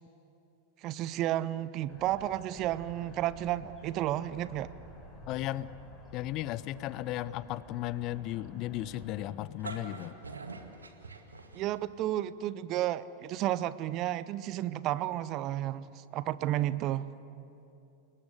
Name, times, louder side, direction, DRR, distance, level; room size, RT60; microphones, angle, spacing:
voice 1, 0.8-4.7 11.5-17.1, right 13 dB, 40° right, 17 dB, 0.7 m, -32 dB
sound 1, 1.9-9.3, left 1 dB, 15° left, 7.4 m, -52 dB
voice 2, 5.3-5.7 6.1-10.2, left 15 dB, 40° left, 19 dB, 0.6 m, -35 dB
sound 2, 9.4-12.0, right 3 dB, 75° right, 2.0 m, -44 dB
30.0 x 20.0 x 8.3 m, 2.8 s
figure-of-eight pair, 90°, 0 cm